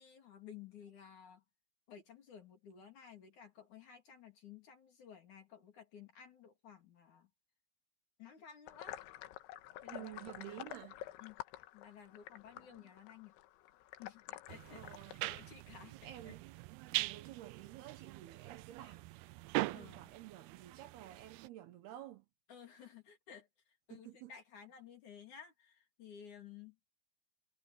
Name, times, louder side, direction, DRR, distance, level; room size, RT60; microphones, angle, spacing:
voice 1, 0.0-1.4 1.9-7.3 8.2-9.0 9.8-10.6 11.2-11.4 11.7-13.3 14.0-14.8 15.2-16.4 16.9-17.0 19.7-20.1 22.5-23.5 23.9-26.8, left 8 dB, 45° left, 4.1 m, -55 dB
sound 1, 8.7-15.5, left 14 dB, 90° left, 3.4 m, -50 dB
voice 2, 9.9-11.0 12.6-12.9 14.7-15.2 16.0-16.6 16.9-19.1 19.6-22.3 23.9-24.3, right 13 dB, 70° right, 2.8 m, -51 dB
sound 2, 14.5-21.5, right 19 dB, 90° right, 2.2 m, -42 dB
omnidirectional pair, 5.2 m